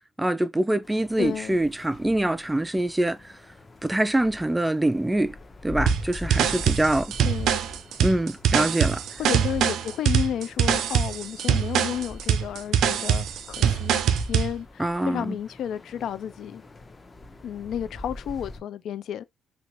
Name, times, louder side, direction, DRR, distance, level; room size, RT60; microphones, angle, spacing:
voice 1, 0.2-3.2 3.8-5.4 5.6-7.1 8.0-9.0 14.8-15.4, right 1 dB, 10° right, 0.3 m, -24 dB
sound 1, 0.8-18.6, left 1 dB, 30° left, 0.7 m, -42 dB
voice 2, 1.2-1.6 7.2-7.6 9.2-14.0 14.3-16.6 17.4-19.2, left 9 dB, 70° left, 0.4 m, -32 dB
sound 2, 5.9-14.5, right 8 dB, 80° right, 0.4 m, -23 dB
2.8 x 2.7 x 3.0 m
cardioid pair, 90°, 0 cm